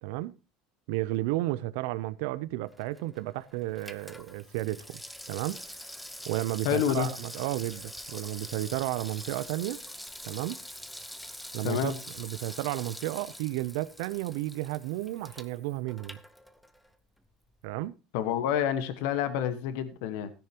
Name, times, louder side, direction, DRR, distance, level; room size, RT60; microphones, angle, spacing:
voice 1, 0.0-0.4 0.9-5.0 5.3-5.6 6.3-9.8 10.2-10.6 11.5-16.2 17.6-17.9, right 17 dB, 80° right, 0.6 m, -33 dB
Water tap faucet / Sink (filling or washing), 2.6-16.9 17.2-17.3, equal, ahead, 0.8 m, -45 dB
voice 2, 6.6-7.1 11.6-11.9 18.1-20.3, left 9 dB, 75° left, 1.3 m, -28 dB
16.0 x 10.5 x 2.9 m
supercardioid pair, 135°, 0 cm